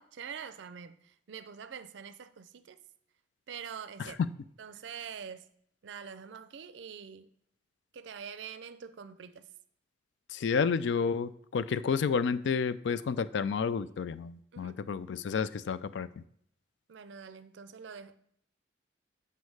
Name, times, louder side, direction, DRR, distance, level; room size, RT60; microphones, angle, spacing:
voice 1, 0.0-2.8 3.5-4.2 4.6-5.5 5.8-7.3 7.9-9.5 14.5-14.8 16.9-18.2, right 7 dB, 70° right, 0.4 m, -45 dB
voice 2, 10.3-16.1, left 6 dB, 70° left, 0.3 m, -30 dB
6.3 x 5.6 x 4.7 m
head